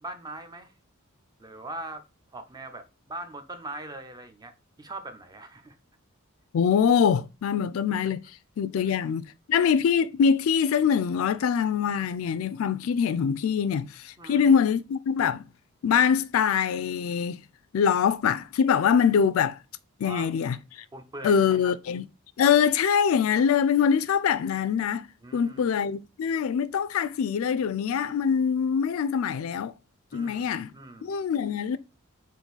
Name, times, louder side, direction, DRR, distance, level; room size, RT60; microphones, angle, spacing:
voice 1, 0.0-0.7 1.4-2.0 2.3-4.5 4.8-5.7 8.8-8.9 14.2-14.5 20.0-20.5 20.9-21.7 25.2-25.8 30.1-31.2, right 2 dB, 20° right, 0.6 m, -41 dB
voice 2, 6.5-8.2 8.6-15.5 15.8-17.4 17.7-19.6 20.0-20.8 21.2-22.1 22.4-25.1 25.3-29.7 30.1-30.7 31.0-31.8, left 7 dB, 70° left, 0.3 m, -24 dB
3.7 x 2.6 x 3.9 m
head